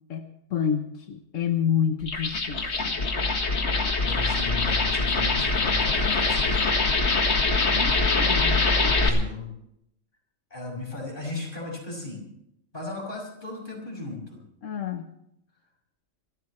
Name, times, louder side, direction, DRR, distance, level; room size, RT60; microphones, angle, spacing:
voice 1, 0.1-3.0 7.7-8.8 14.6-15.0, left 8 dB, 85° left, 5 dB, 1.4 m, -29 dB
sound 1, 2.0-9.1, left 3 dB, 60° left, 2.0 m, -23 dB
voice 2, 4.0-6.7 9.0-9.5 10.5-12.3 12.7-14.4, left 3 dB, 40° left, -1 dB, 6.0 m, -36 dB
26.5 x 13.0 x 3.2 m, 0.77 s
omnidirectional pair, 1.3 m